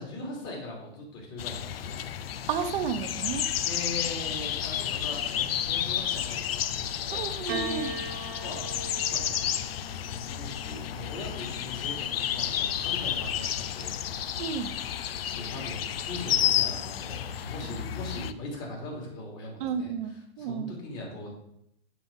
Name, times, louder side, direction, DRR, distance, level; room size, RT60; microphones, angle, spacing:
voice 1, 0.0-2.0 3.6-7.3 8.3-9.5 10.2-14.0 15.3-21.3, left 2 dB, 40° left, -2 dB, 3.1 m, -40 dB
sound 1, 1.4-18.3, left 10 dB, 70° left, 0.5 m, -31 dB
voice 2, 2.5-3.4 7.1-7.9 14.4-14.7 19.6-20.8, right 7 dB, 55° right, 8 dB, 0.9 m, -32 dB
Piano, 7.5-12.0 13.0-13.8, right 3 dB, 70° right, 1.3 m, -40 dB
7.4 x 6.0 x 3.6 m, 0.75 s
hypercardioid pair, 120°, 31 cm